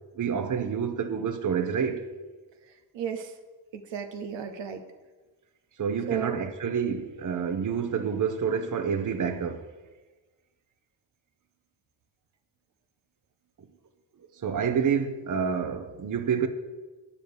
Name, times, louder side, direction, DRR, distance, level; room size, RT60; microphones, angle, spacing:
voice 1, 0.1-2.0 5.8-9.7 13.6-13.7 14.4-16.5, right 7 dB, 45° right, 0.8 m, -28 dB
voice 2, 2.7-3.4 3.7-4.8 6.1-6.4, right 7 dB, 90° right, 0.7 m, -34 dB
8.5 x 5.2 x 4.8 m
cardioid pair, 60°, 43 cm